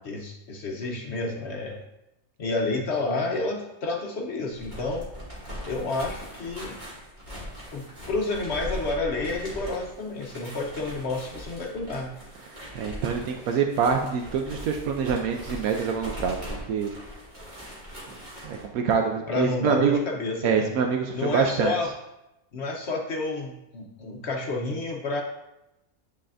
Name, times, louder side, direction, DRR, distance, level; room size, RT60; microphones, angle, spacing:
voice 1, 0.0-1.8 2.4-5.0 5.6-6.8 7.7-12.1 19.3-20.8 21.1-21.9 22.5-25.2, left 3 dB, 60° left, 1 dB, 0.9 m, -30 dB
sound 1, 4.5-18.7, equal, 30° right, 2.2 m, -40 dB
voice 2, 12.7-16.9 18.1-18.2 18.4-20.0 20.4-21.7, right 6 dB, 80° right, 4 dB, 1.0 m, -25 dB
9.8 x 4.1 x 2.5 m, 0.90 s
omnidirectional pair, 1.5 m